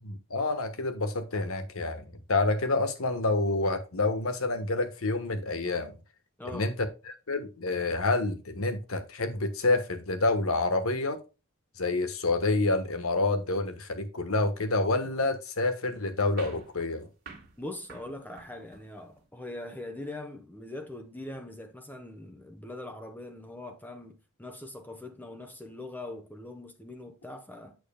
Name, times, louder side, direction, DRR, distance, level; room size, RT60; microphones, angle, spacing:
voice 1, 0.0-5.9 6.5-6.7 7.1-11.2 11.8-17.1, left 2 dB, 90° left, 1.3 m, -28 dB
voice 2, 6.4-6.7 17.6-27.8, left 1 dB, 10° left, 0.8 m, -42 dB
sound 1, 16.4-19.3, right 4 dB, 50° right, 1.8 m, -50 dB
8.0 x 6.8 x 2.2 m
head